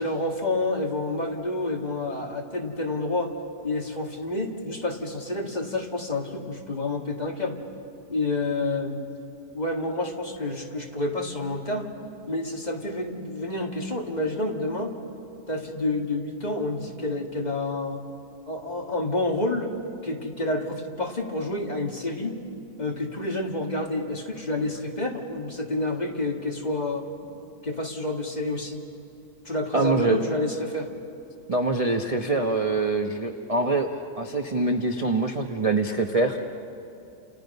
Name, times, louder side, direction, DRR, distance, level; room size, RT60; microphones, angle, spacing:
voice 1, 0.0-3.3 3.6-7.6 8.1-9.1 9.5-11.9 12.3-14.9 15.5-18.1 18.5-19.7 20.0-22.4 22.8-27.1 27.6-28.8 29.5-30.9, left 2 dB, 25° left, 1 dB, 2.1 m, -29 dB
voice 2, 29.7-30.2 31.5-36.4, right 2 dB, 25° right, 4 dB, 0.9 m, -24 dB
30.0 x 28.5 x 5.5 m, 2.8 s
omnidirectional pair, 1.8 m